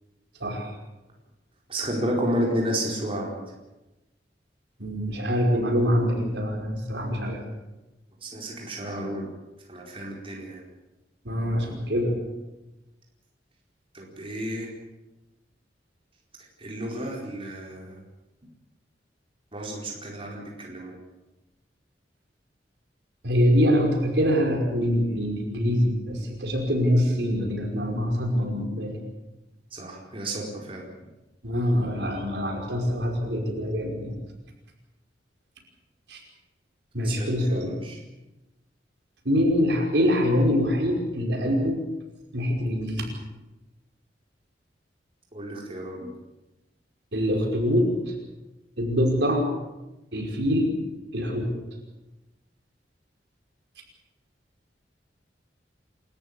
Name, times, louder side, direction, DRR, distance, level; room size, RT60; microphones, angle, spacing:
voice 1, 1.7-3.3 8.2-9.3 9.7-10.6 13.9-14.7 16.6-18.0 19.5-20.9 29.7-30.8 37.0-38.0 45.3-46.1, equal, 30° right, -1 dB, 4.5 m, -31 dB
voice 2, 4.8-7.4 11.3-12.1 23.2-29.0 31.4-34.1 36.1-36.2 36.9-37.7 39.3-41.8 42.3-43.1 47.1-48.1 48.8-49.5 50.1-50.8 51.1-51.5, equal, 70° right, 2 dB, 5.4 m, -24 dB
28.5 x 14.0 x 8.6 m, 1.0 s
head